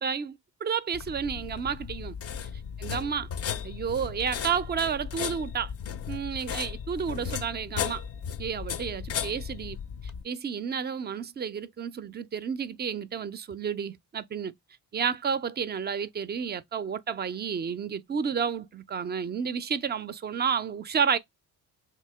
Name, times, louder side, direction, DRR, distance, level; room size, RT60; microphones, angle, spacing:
voice 1, 0.0-2.1 2.8-3.3 3.6-5.7 6.1-8.0 8.4-9.8 10.2-14.5 14.9-21.2, right 7 dB, 25° right, 0.4 m, -31 dB
sound 1, 0.9-10.2, left 8 dB, 40° left, 0.4 m, -36 dB
2.9 x 2.7 x 3.3 m
supercardioid pair, 55°, 40 cm